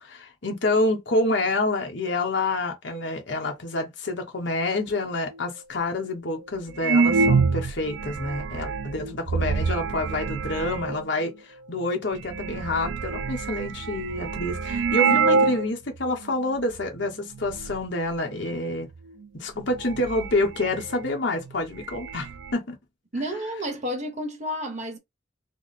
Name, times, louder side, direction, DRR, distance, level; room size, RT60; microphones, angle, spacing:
voice 1, 0.0-18.9 19.3-22.8, left 2 dB, 60° left, 1.0 m, -28 dB
sound 1, 5.3-5.4 6.1-6.2 6.8-11.1 11.8-11.9 12.1-15.7 16.0-16.1 16.7-17.1 17.3-17.8 19.1-19.2 19.6-21.2 21.4-21.5 21.8-22.5, right 4 dB, 60° right, 0.3 m, -26 dB
voice 2, 23.1-25.0, equal, 35° right, 1.0 m, -31 dB
3.4 x 2.1 x 4.0 m
head